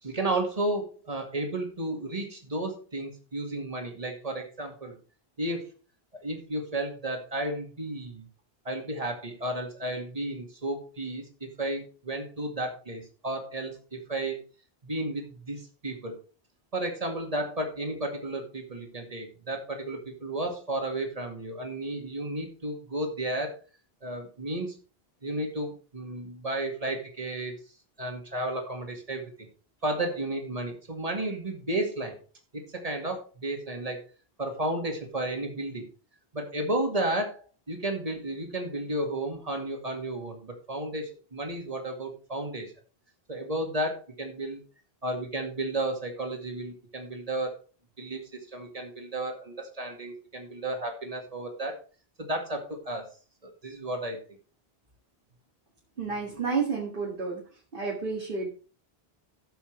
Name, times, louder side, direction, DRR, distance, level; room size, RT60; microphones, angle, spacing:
voice 1, 0.0-5.0 5.4-5.7 6.2-8.3 8.6-11.2 11.6-14.4 14.8-16.1 16.7-23.5 24.0-24.8 25.2-27.5 28.0-29.3 29.8-32.2 32.5-34.0 34.4-35.8 36.3-42.7 43.3-44.6 45.0-47.5 48.0-48.2 48.5-51.8 52.2-53.1 53.4-54.2, right 1 dB, 35° right, 2 dB, 2.2 m, -33 dB
voice 2, 56.0-57.4 57.7-58.5, right 5 dB, 60° right, -3 dB, 2.3 m, -30 dB
14.5 x 7.1 x 3.3 m, 0.37 s
omnidirectional pair, 1.0 m